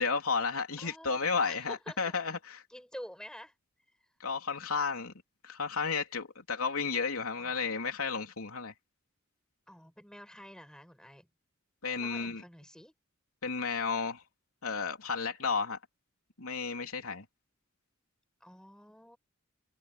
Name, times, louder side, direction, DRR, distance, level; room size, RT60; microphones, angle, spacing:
voice 1, 0.0-2.6 4.2-5.1 5.4-8.7 11.8-12.4 13.4-14.2 14.6-15.8 16.4-17.2, left 5 dB, 85° left, 3.4 m, -32 dB
voice 2, 0.8-1.2 1.5-2.0 2.7-3.6 7.4-7.7 9.7-11.3 12.0-12.9 18.4-19.2, equal, 5° left, 6.9 m, -48 dB
head